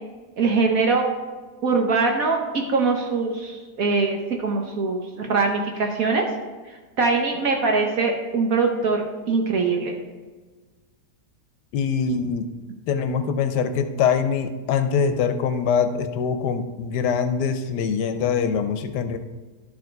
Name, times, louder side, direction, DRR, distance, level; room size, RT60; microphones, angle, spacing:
voice 1, 0.4-1.1 1.6-6.3 7.0-9.0 9.3-9.9, right 4 dB, 60° right, 2 dB, 1.3 m, -22 dB
voice 2, 11.7-12.5 12.9-19.2, left 6 dB, 85° left, 8 dB, 1.2 m, -23 dB
12.0 x 4.9 x 4.6 m, 1.4 s
omnidirectional pair, 1.8 m